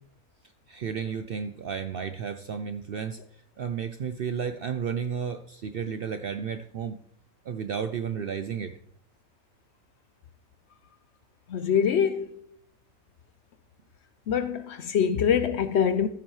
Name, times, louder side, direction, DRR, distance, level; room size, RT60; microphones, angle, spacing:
voice 1, 0.7-3.2 3.6-7.0 7.5-8.8, right 7 dB, 65° right, 0.6 m, -32 dB
voice 2, 11.5-12.4 14.3-16.1, left 8 dB, 65° left, 0.7 m, -24 dB
14.5 x 7.4 x 3.1 m
omnidirectional pair, 1.4 m